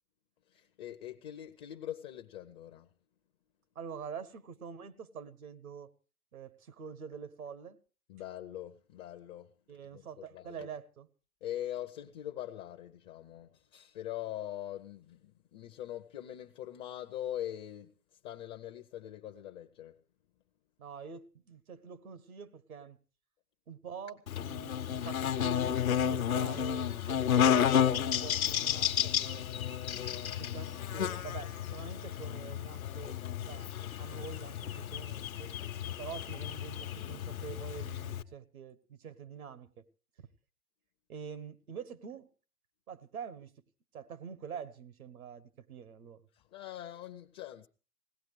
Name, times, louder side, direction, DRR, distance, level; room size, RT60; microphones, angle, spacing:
voice 1, 0.5-2.9 8.1-9.5 9.9-10.7 11.4-20.0 46.3-47.7, left 12 dB, 30° left, 0.7 m, -43 dB
voice 2, 3.7-5.9 6.3-7.8 9.7-11.1 20.8-23.0 23.7-29.5 30.4-35.5 36.0-39.9 41.1-42.3 42.9-43.5 43.9-46.3, right 6 dB, 75° right, 1.2 m, -46 dB
Buzz, 24.3-38.2, left 9 dB, 65° left, 1.0 m, -32 dB
21.0 x 17.5 x 3.2 m
figure-of-eight pair, 110°, 44 cm